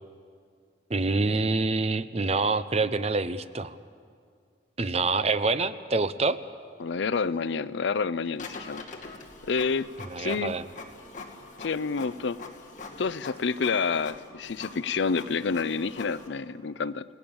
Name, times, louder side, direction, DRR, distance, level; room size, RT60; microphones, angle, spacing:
voice 1, 0.9-3.7 4.8-6.4 10.0-10.6, right 3 dB, 30° right, 13 dB, 0.6 m, -26 dB
voice 2, 6.8-8.8 9.4-9.9 10.2-10.5 11.6-12.4 13.0-17.0, left 5 dB, 65° left, 17 dB, 0.5 m, -28 dB
Printer, 8.3-16.3, left 3 dB, 40° left, 2.3 m, -44 dB
30.0 x 17.5 x 7.1 m, 2.2 s
head